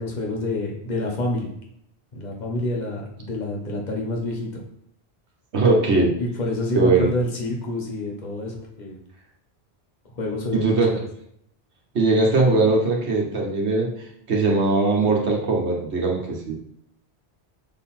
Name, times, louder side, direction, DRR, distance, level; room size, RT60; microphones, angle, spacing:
voice 1, 0.0-1.5 2.1-4.6 6.2-9.0 10.2-11.0, left 1 dB, 40° left, -1 dB, 1.4 m, -27 dB
voice 2, 5.5-6.1 6.7-7.1 10.5-10.9 11.9-13.9 14.3-16.5, right 3 dB, 85° right, 0 dB, 1.5 m, -20 dB
6.5 x 3.9 x 4.3 m, 0.72 s
omnidirectional pair, 1.1 m